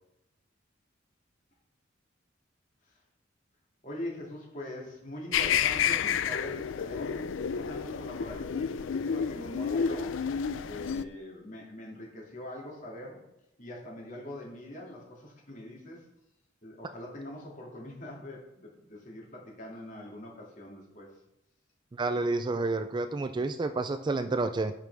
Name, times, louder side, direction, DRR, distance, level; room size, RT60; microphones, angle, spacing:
voice 1, 3.8-10.4 10.7-13.2 13.6-16.1 16.6-21.2, left 1 dB, 40° left, -2 dB, 2.5 m, -43 dB
sound 1, 5.3-11.0, left 7 dB, 75° left, 0.4 m, -30 dB
voice 2, 21.9-24.7, right 3 dB, 25° right, 10 dB, 0.3 m, -29 dB
9.0 x 5.7 x 4.7 m, 0.87 s
head